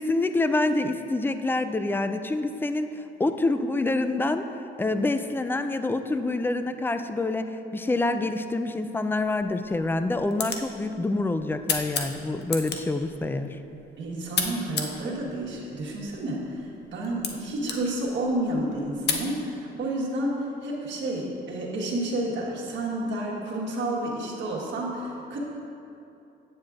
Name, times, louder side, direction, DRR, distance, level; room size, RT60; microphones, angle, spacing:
voice 1, 0.0-4.5 4.8-13.6, left 2 dB, 10° left, 9 dB, 0.3 m, -27 dB
sound 1, 9.2-19.3, left 5 dB, 55° left, 0.7 m, -35 dB
voice 2, 14.0-20.3 20.6-25.4, right 1 dB, 65° right, -3 dB, 1.4 m, -30 dB
8.8 x 7.6 x 2.5 m, 2.8 s
cardioid pair, 90°, 20 cm